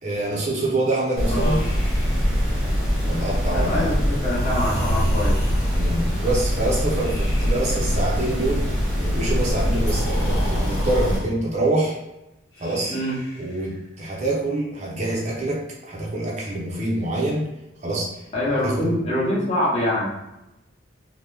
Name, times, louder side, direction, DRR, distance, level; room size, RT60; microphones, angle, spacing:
voice 1, 0.0-1.6 3.0-3.9 5.7-12.0 12.6-12.9 13.4-17.5 17.8-18.9, right 2 dB, 35° right, -3 dB, 0.5 m, -26 dB
sound 1, 1.2-11.2, equal, ahead, 0.9 m, -23 dB
Breathing, 1.4-2.9 4.3-6.0 7.0-8.0 9.8-11.3 12.5-13.7, equal, 75° left, 1.1 m, -33 dB
voice 2, 3.5-5.4 12.9-13.2 18.3-20.1, left 1 dB, 30° left, -6 dB, 0.9 m, -24 dB
2.9 x 2.1 x 3.2 m, 0.94 s
head